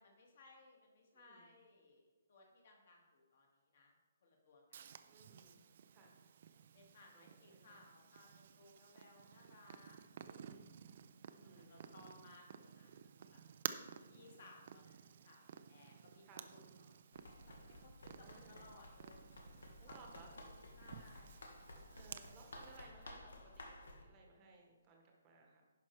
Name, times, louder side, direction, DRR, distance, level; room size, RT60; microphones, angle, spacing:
voice 1, 0.0-3.9 4.2-4.9 6.7-10.2 11.4-13.4 14.1-17.0 17.3-19.5 19.8-21.5, left 2 dB, 35° left, 1 dB, 2.0 m, -63 dB
voice 2, 1.1-1.5 5.0-5.6 5.9-6.1 7.1-7.8 10.2-10.6 11.3-12.3 13.9-14.3 16.2-16.5 18.2-18.7 19.8-20.4 21.9-25.7, right 3 dB, 15° right, 0 dB, 1.2 m, -62 dB
Purr, 4.7-22.8, right 8 dB, 30° right, 0.4 m, -54 dB
Run, 17.1-24.0, left 1 dB, 75° left, 1.8 m, -55 dB
10.5 x 5.7 x 4.6 m, 1.3 s
hypercardioid pair, 180°, 0 cm